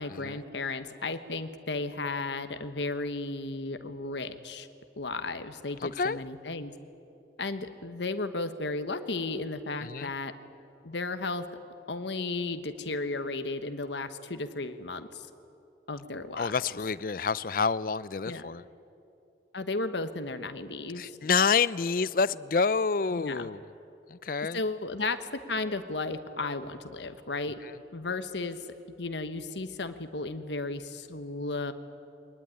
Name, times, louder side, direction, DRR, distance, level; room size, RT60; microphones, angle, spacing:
voice 1, 0.0-4.7 5.0-6.7 7.4-10.3 10.8-11.4 11.9-15.3 15.9-16.6 18.2-18.4 19.5-21.2 23.1-23.5 24.5-27.6 27.9-28.6 29.0-31.7, left 3 dB, 75° left, 9 dB, 1.3 m, -34 dB
voice 2, 16.4-18.6 21.0-23.6 24.1-24.6, left 5 dB, 50° left, 18 dB, 0.5 m, -28 dB
23.0 x 19.0 x 9.8 m, 2.8 s
head